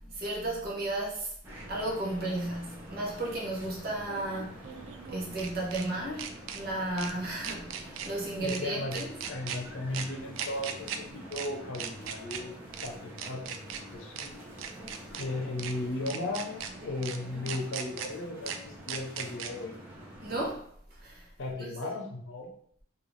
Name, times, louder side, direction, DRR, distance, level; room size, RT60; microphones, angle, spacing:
voice 1, 0.1-1.3 1.7-4.7 5.1-9.1 20.2-21.3 21.6-21.7, right 2 dB, 50° right, -3 dB, 0.8 m, -34 dB
sound 1, 1.4-20.5, equal, 15° right, 0.6 m, -47 dB
sound 2, 1.6-1.7 4.0-5.9 6.2-6.6 7.0-7.1 7.4-8.1 8.4-8.6 8.9-9.6 9.9-10.1 10.4-11.0 11.3-11.5 11.7-12.4 12.7-12.9 13.2-13.8 14.2-14.3 14.6-15.2 15.6-15.7 16.1-16.7 17.0-17.2 17.5-18.1 18.5-18.6 18.9-19.5, right 8 dB, 90° right, 0.3 m, -38 dB
voice 2, 8.4-14.4 15.2-19.8 21.4-22.5, left 2 dB, 85° left, 1 dB, 0.6 m, -36 dB
2.5 x 2.3 x 3.2 m, 0.63 s
head